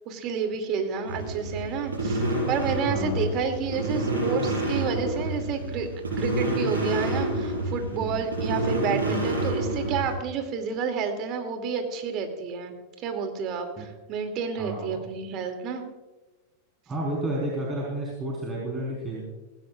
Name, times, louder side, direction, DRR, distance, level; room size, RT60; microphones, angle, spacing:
voice 1, 0.1-5.9 6.2-12.7 13.0-15.8, right 6 dB, 45° right, 5 dB, 2.7 m, -30 dB
sound 1, 1.0-10.1, right 2 dB, 90° right, 5.4 m, -28 dB
voice 2, 2.9-3.4 7.9-8.2 13.8-13.9 14.6-15.0 16.9-19.3, right 1 dB, 20° right, -4 dB, 4.4 m, -31 dB
19.0 x 17.0 x 2.5 m, 1.2 s
hypercardioid pair, 95°, 0 cm